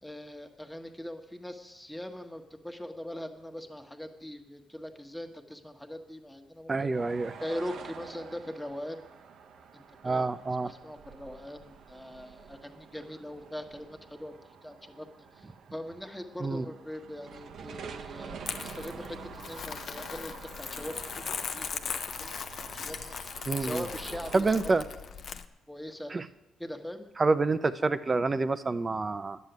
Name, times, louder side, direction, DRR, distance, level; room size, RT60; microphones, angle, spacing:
voice 1, 0.0-6.9 7.4-9.0 9.7-10.3 10.6-14.3 14.6-15.1 15.3-24.7 25.7-26.1 26.6-27.1, left 1 dB, 5° left, 4 dB, 1.5 m, -41 dB
voice 2, 6.7-7.3 10.0-10.7 16.4-16.6 23.5-23.8 24.3-24.8 26.1-26.2 27.2-29.4, right 3 dB, 30° right, 12 dB, 0.7 m, -27 dB
sound 1, 6.9-24.7, right 6 dB, 70° right, 1.0 m, -48 dB
Crumpling crinkling, 18.4-25.4, left 6 dB, 55° left, 0.7 m, -39 dB
11.0 x 7.5 x 9.4 m, 1.0 s
cardioid pair, 90°, 0 cm